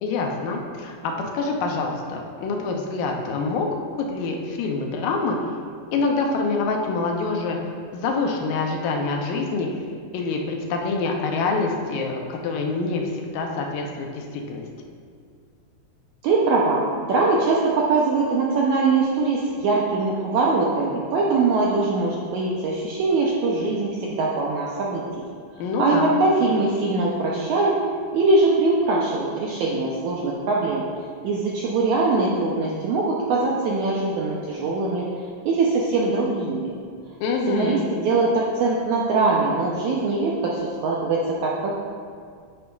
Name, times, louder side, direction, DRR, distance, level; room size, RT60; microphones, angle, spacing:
voice 1, 0.0-3.7 4.1-5.4 5.9-7.6 7.9-9.7 10.1-14.6 25.6-26.1 37.2-37.8, left 3 dB, 75° left, 1 dB, 2.3 m, -26 dB
voice 2, 16.2-25.0 25.8-27.8 28.1-30.8 31.2-35.0 35.4-36.7 37.5-41.8, right 3 dB, 80° right, -4 dB, 1.7 m, -22 dB
9.6 x 8.9 x 2.3 m, 2.1 s
omnidirectional pair, 4.2 m